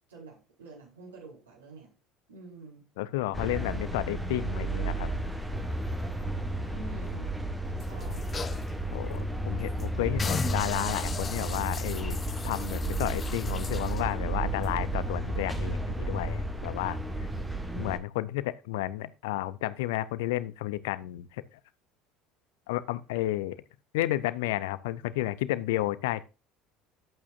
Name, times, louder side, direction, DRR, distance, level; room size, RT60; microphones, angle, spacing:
voice 1, 0.1-1.9 2.3-2.8 6.7-7.3 7.8-8.5, right 3 dB, 75° right, 4.9 m, -47 dB
voice 2, 3.0-5.1 8.9-12.2 12.4-17.3 17.8-21.4 22.7-23.6 23.9-26.2, left 16 dB, 65° left, 0.6 m, -32 dB
sound 1, 3.3-18.0, right 1 dB, 10° right, 1.4 m, -32 dB
sound 2, 7.8-8.7 9.1-9.2 9.6-9.8 10.2-14.1 14.6-14.7, left 5 dB, 25° left, 0.6 m, -38 dB
11.0 x 8.3 x 2.6 m
figure-of-eight pair, 60°, 0 cm